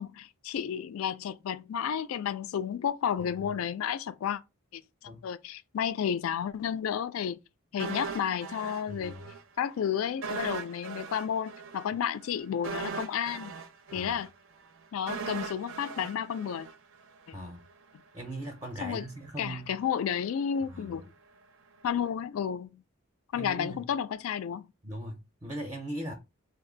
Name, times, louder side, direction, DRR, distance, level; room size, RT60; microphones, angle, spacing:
voice 1, 0.0-4.4 4.7-7.4 7.7-9.1 9.6-13.5 13.9-14.3 14.9-16.7 17.3-17.4 18.8-19.1 19.4-21.1 21.8-22.8 23.3-24.7, left 8 dB, 80° left, 0.3 m, -32 dB
sound 1, 7.8-9.4 9.7-9.8 10.2-17.3 17.6-17.7, right 5 dB, 70° right, 0.5 m, -39 dB
voice 2, 8.9-9.2 13.9-14.2 17.3-17.7 18.1-19.7 20.7-21.0 23.3-23.8 24.8-26.1, right 1 dB, 15° right, 0.4 m, -39 dB
2.6 x 2.3 x 3.7 m
head